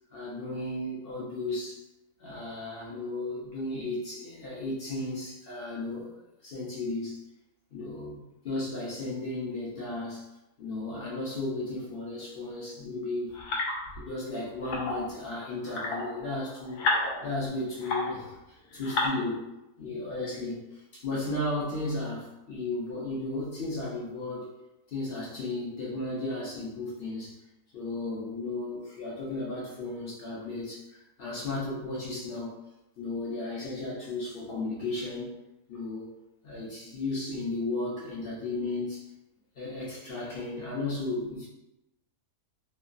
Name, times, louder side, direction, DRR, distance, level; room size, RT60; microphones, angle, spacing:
voice 1, 0.1-1.8 2.2-6.2 6.4-7.2 7.7-10.3 10.6-13.3 14.0-16.8 17.2-19.5 19.8-24.5 24.9-27.4 27.7-32.6 33.0-35.3 35.7-36.1 36.4-39.1 39.6-41.5, left 2 dB, 65° left, -6 dB, 0.5 m, -34 dB
sound 1, 13.3-14.1 14.6-15.1 15.6-18.3 18.7-19.1, left 2 dB, 80° left, 1.1 m, -32 dB
2.9 x 2.2 x 2.5 m, 0.93 s
omnidirectional pair, 1.7 m